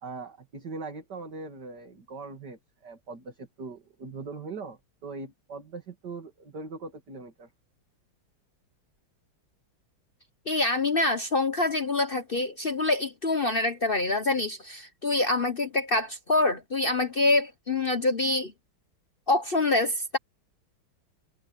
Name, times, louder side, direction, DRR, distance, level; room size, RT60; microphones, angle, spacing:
voice 1, 0.0-7.5, right 3 dB, 50° right, 3.1 m, -41 dB
voice 2, 10.5-18.5 19.3-20.2, left 2 dB, 45° left, 0.7 m, -26 dB
omnidirectional pair, 2.3 m